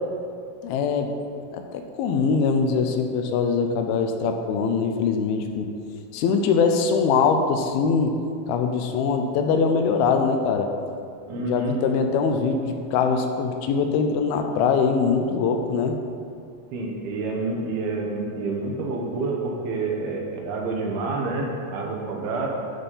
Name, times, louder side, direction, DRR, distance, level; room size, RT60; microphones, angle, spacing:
voice 1, 0.6-1.1 1.5-5.7 6.1-8.1 8.5-10.7 11.4-16.0, left 5 dB, 80° left, 5 dB, 2.5 m, -22 dB
voice 2, 11.3-11.8 16.7-22.5, right 3 dB, 80° right, -1 dB, 3.0 m, -28 dB
11.5 x 4.2 x 5.3 m, 2.4 s
omnidirectional pair, 4.4 m